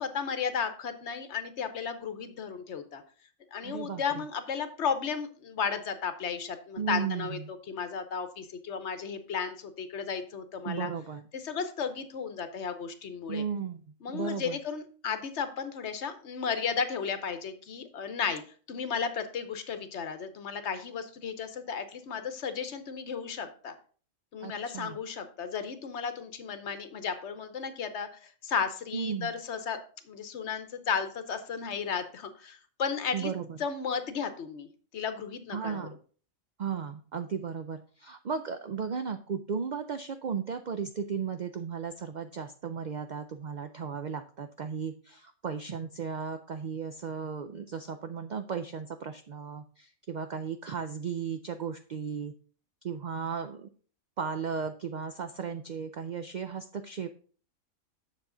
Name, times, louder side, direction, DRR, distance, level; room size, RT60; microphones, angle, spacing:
voice 1, 0.0-3.0 3.5-10.9 11.3-13.4 14.0-18.4 18.7-23.7 24.3-29.8 30.0-33.3 33.6-34.7 34.9-35.9, left 6 dB, 60° left, 10 dB, 1.0 m, -34 dB
voice 2, 3.6-4.2 6.8-7.4 10.7-11.3 13.3-14.6 24.4-25.0 28.9-29.3 33.1-33.6 35.5-36.0 36.6-52.3 52.8-53.7 54.2-57.1, right 6 dB, 85° right, 9 dB, 0.4 m, -35 dB
7.2 x 6.7 x 3.8 m, 0.41 s
omnidirectional pair, 1.4 m